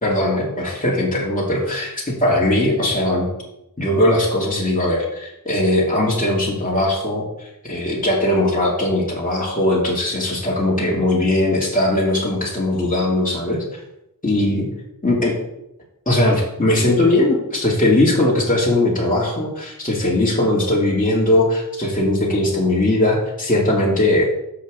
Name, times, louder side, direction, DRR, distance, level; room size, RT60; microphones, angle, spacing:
voice 1, 0.0-3.3 3.8-13.8 14.2-14.7 15.0-15.4 16.1-24.3, left 1 dB, 20° left, -5 dB, 2.7 m, -19 dB
6.8 x 6.4 x 6.8 m, 0.87 s
cardioid pair, 55°, 37 cm